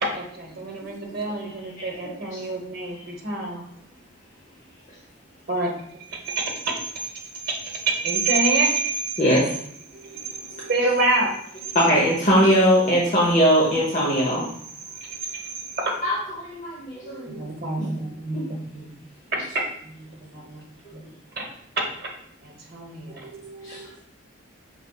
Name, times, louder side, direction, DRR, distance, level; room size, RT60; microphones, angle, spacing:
voice 1, 0.0-3.6 5.5-5.7 6.2-6.7 7.4-9.1 10.7-11.3 15.0-15.9 17.3-18.4 18.7-18.9 19.8-19.9 20.2-20.6 20.9-21.0 21.4-21.5 21.8-21.9 22.4-23.2, right 3 dB, 50° right, 0 dB, 0.9 m, -26 dB
voice 2, 0.8-1.3 9.9-10.8 17.0-17.6 19.3-19.4 20.3-20.5 23.2-24.0, right 3 dB, 65° right, 5 dB, 0.5 m, -45 dB
voice 3, 11.7-14.5 16.0-17.9 18.3-18.4 20.9-21.0 23.6-23.8, equal, 40° left, -4 dB, 0.8 m, -21 dB
5.1 x 3.3 x 2.3 m, 0.66 s
head